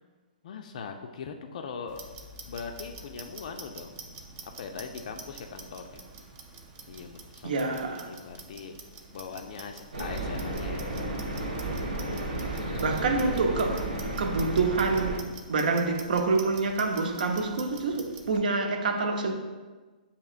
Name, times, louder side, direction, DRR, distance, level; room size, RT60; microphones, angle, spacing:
voice 1, 0.4-2.0 2.5-3.9 4.4-6.0 6.9-8.8 9.1-11.0, left 5 dB, 55° left, 0.3 m, -41 dB
Clock, 1.9-18.4, right 4 dB, 25° right, 0.4 m, -47 dB
voice 2, 7.4-8.1 12.8-13.9 14.2-15.2 15.5-19.3, right 3 dB, 70° right, 0.6 m, -27 dB
sound 1, 9.9-15.2, right 1 dB, 90° right, 1.0 m, -33 dB
6.7 x 2.8 x 2.4 m
hypercardioid pair, 160°, 5 cm